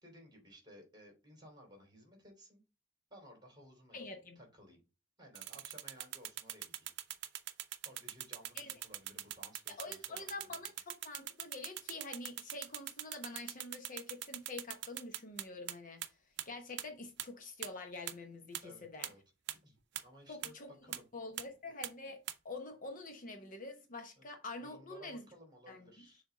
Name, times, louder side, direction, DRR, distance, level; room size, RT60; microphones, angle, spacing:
voice 1, 0.0-2.6 3.1-4.8 5.2-6.9 7.8-10.7 18.6-19.2 19.6-19.8 20.0-21.1 24.2-24.3 24.6-26.2, equal, 20° right, 3.1 m, -58 dB
voice 2, 3.9-4.4 8.5-8.8 9.8-16.1 16.4-19.1 20.3-25.2 25.7-25.9, left 3 dB, 45° left, 1.0 m, -47 dB
sound 1, 5.4-15.7 16.0-16.1 16.4-16.5 16.8-16.9 17.2-17.3 17.6-17.7 18.1-18.2 18.5-18.6 19.0-19.1 19.5-19.6 20.0-20.1 20.4-20.5 20.9-21.0 21.4-21.5 21.8-21.9 22.3-22.4, right 13 dB, 60° right, 0.6 m, -41 dB
6.4 x 3.5 x 5.0 m
head